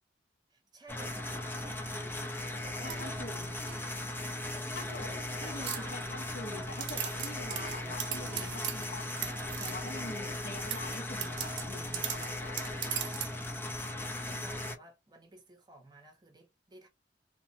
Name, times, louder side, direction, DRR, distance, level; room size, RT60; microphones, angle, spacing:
voice 1, 0.5-3.9 4.5-6.0 13.6-16.9, right 2 dB, 25° right, 0.7 m, -54 dB
sound 1, 0.9-14.8, left 1 dB, 10° left, 0.5 m, -38 dB
voice 2, 2.8-3.5 4.7-9.3 9.6-12.6, left 2 dB, 55° left, 0.7 m, -45 dB
sound 2, 2.9-4.4 4.9-5.3 5.7-6.4 6.8-10.0 10.6-13.4, right 10 dB, 80° right, 0.6 m, -40 dB
2.9 x 2.1 x 2.7 m
head